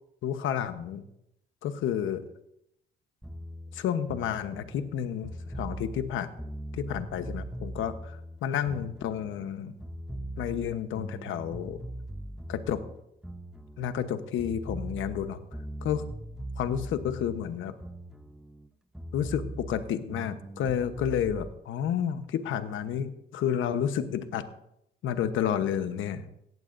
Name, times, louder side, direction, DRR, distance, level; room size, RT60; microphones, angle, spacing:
voice 1, 0.2-1.0 1.6-2.2 3.7-6.3 6.8-8.2 8.4-9.7 10.4-11.8 12.5-12.8 13.8-15.4 15.8-16.1 16.6-17.7 19.1-24.4 25.0-26.2, left 9 dB, 80° left, 10 dB, 1.1 m, -30 dB
sound 1, 3.2-9.5 9.8-14.1 14.4-18.7 18.9-21.5, right 1 dB, 5° right, 0.8 m, -40 dB
17.5 x 14.5 x 2.6 m, 0.79 s
cardioid pair, 90°, 20 cm